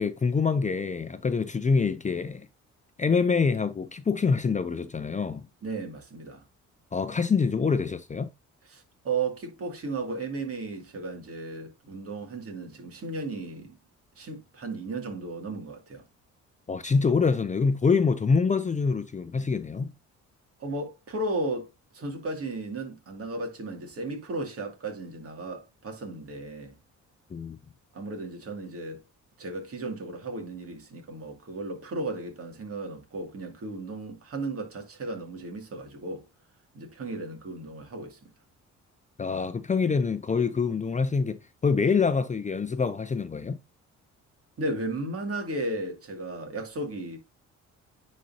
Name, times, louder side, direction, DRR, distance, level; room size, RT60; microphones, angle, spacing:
voice 1, 0.0-2.5 3.0-5.5 6.9-8.3 16.7-19.9 27.3-27.6 39.2-43.6, left 5 dB, 25° left, 0.6 m, -25 dB
voice 2, 5.6-6.4 8.7-13.8 14.2-16.0 20.6-26.7 27.9-29.0 29.4-36.3 36.7-38.3 44.6-47.2, right 2 dB, 50° right, 2.6 m, -35 dB
9.9 x 4.3 x 2.8 m
cardioid pair, 90°, 30 cm